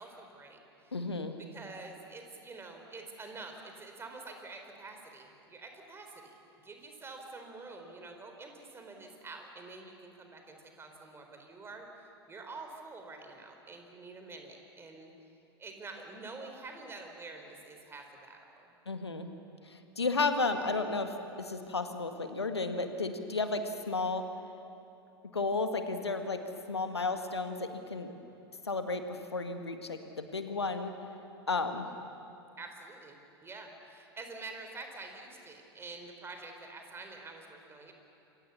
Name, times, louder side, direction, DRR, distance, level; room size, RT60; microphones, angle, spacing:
voice 1, 0.0-1.0 1.4-15.1 15.6-18.7 32.6-37.9, right 3 dB, 20° right, 4 dB, 4.0 m, -47 dB
voice 2, 0.9-1.4 18.9-19.3 19.7-21.1 21.4-24.3 25.3-26.4 26.7-28.1 28.6-30.9 31.5-31.9, left 3 dB, 80° left, 7 dB, 1.9 m, -33 dB
28.0 x 24.0 x 7.2 m, 2.9 s
figure-of-eight pair, 85°, 14 cm